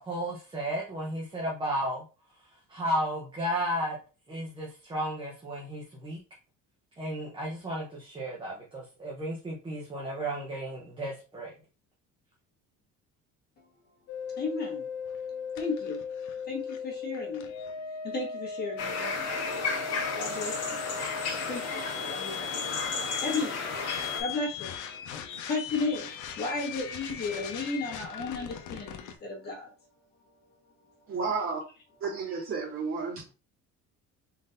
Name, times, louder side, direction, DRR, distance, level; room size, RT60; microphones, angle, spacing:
voice 1, 0.0-2.0 2.7-4.0 4.3-6.2 7.0-11.5, equal, 15° right, -4 dB, 0.8 m, -33 dB
sound 1, 14.1-29.2, left 6 dB, 70° left, 0.7 m, -38 dB
voice 2, 14.4-14.9 15.5-16.0 16.5-17.5 18.0-19.3 20.1-20.8 21.5-22.8 23.2-23.6 24.2-24.8 25.5-29.7, left 3 dB, 30° left, -2 dB, 1.4 m, -34 dB
sound 2, 18.8-24.2, left 4 dB, 50° left, 1.4 m, -33 dB
voice 3, 31.1-31.6 32.0-33.2, right 4 dB, 40° right, -6 dB, 2.3 m, -32 dB
4.0 x 3.7 x 2.5 m, 0.34 s
cardioid pair, 175°, 32 cm